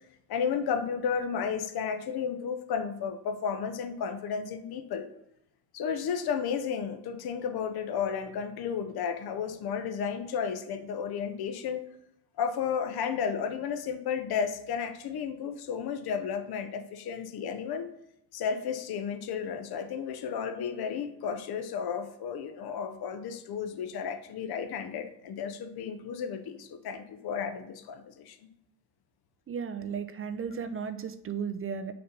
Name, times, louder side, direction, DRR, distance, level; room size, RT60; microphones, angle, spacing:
voice 1, 0.3-5.1 5.7-11.8 12.4-17.9 18.3-28.4, left 7 dB, 50° left, 8 dB, 1.0 m, -33 dB
voice 2, 29.5-31.9, right 6 dB, 30° right, 11 dB, 0.6 m, -35 dB
6.5 x 2.9 x 5.5 m, 0.81 s
hypercardioid pair, 70°, 47 cm